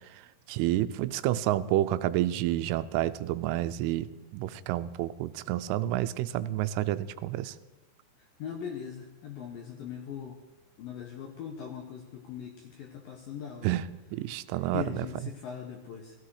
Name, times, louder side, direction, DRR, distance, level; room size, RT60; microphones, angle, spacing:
voice 1, 0.5-4.1 4.3-7.5 13.6-15.3, right 14 dB, 85° right, 13 dB, 3.1 m, -29 dB
voice 2, 8.4-10.3 10.8-12.5 12.8-13.7 14.7-16.1, left 8 dB, 70° left, 3 dB, 2.2 m, -40 dB
16.0 x 15.5 x 4.9 m, 1.1 s
omnidirectional pair, 5.6 m